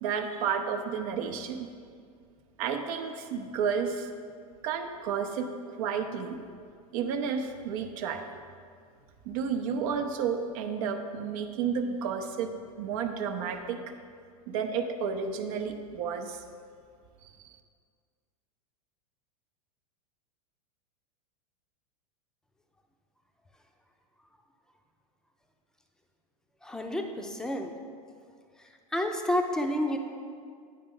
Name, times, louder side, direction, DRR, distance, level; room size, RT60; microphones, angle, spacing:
voice 1, 0.0-1.7 2.6-4.1 4.6-6.4 6.9-8.2 9.2-12.5 12.8-13.8 14.5-16.4 17.2-17.6, right 6 dB, 60° right, 6 dB, 0.7 m, -31 dB
voice 2, 26.6-27.7 28.9-30.0, left 1 dB, 5° left, 4 dB, 0.6 m, -29 dB
9.3 x 5.0 x 3.8 m, 2.1 s
hypercardioid pair, 105°, 21 cm